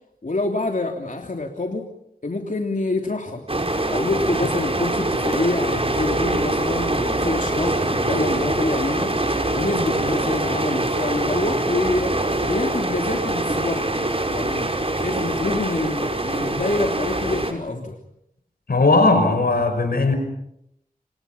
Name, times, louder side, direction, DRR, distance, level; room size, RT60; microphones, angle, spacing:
voice 1, 0.2-1.9 2.2-9.1 9.5-14.0 14.3-18.0, left 2 dB, 60° left, 2 dB, 3.1 m, -27 dB
sound 1, 3.5-17.5, right 2 dB, 40° right, 5.8 m, -24 dB
voice 2, 18.7-20.1, left 3 dB, 90° left, 7 dB, 5.8 m, -17 dB
29.5 x 28.0 x 5.8 m, 0.78 s
wide cardioid pair, 45°, 15 cm